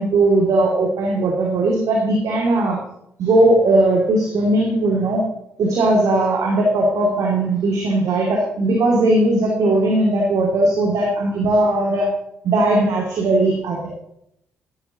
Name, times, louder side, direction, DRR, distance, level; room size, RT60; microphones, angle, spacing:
voice 1, 0.0-2.8 3.2-5.2 5.6-12.1 12.4-13.9, right 2 dB, 60° right, -1 dB, 2.6 m, -18 dB
14.0 x 12.5 x 3.0 m, 0.77 s
hypercardioid pair, 40°, 7 cm